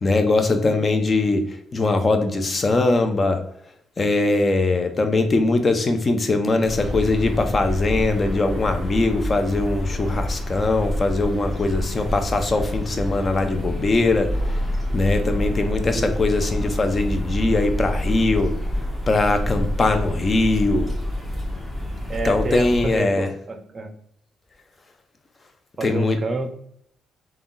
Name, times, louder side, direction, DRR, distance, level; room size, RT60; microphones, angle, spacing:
voice 1, 0.0-1.4 1.7-3.4 4.0-14.3 14.9-18.5 19.1-20.9 22.2-23.3 25.8-26.2, left 2 dB, 35° left, 7 dB, 0.5 m, -21 dB
sound 1, 6.6-23.0, left 1 dB, 10° left, 1.0 m, -27 dB
voice 2, 22.1-23.9 25.8-26.5, right 2 dB, 35° right, 8 dB, 0.5 m, -28 dB
3.5 x 2.3 x 2.6 m, 0.68 s
cardioid pair, 90°, 0 cm